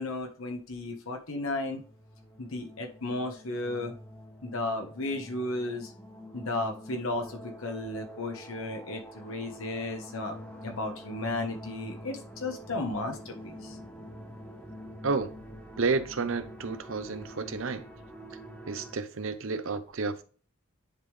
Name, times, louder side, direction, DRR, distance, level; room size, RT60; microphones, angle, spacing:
voice 1, 0.0-1.8 2.4-3.9 4.4-5.9 6.3-10.4 10.6-13.8, left 2 dB, 70° left, 1.2 m, -34 dB
sound 1, 1.5-19.0, equal, 5° left, 1.0 m, -46 dB
voice 2, 15.8-17.8 18.7-20.2, right 4 dB, 65° right, 0.7 m, -31 dB
10.0 x 3.7 x 3.3 m
head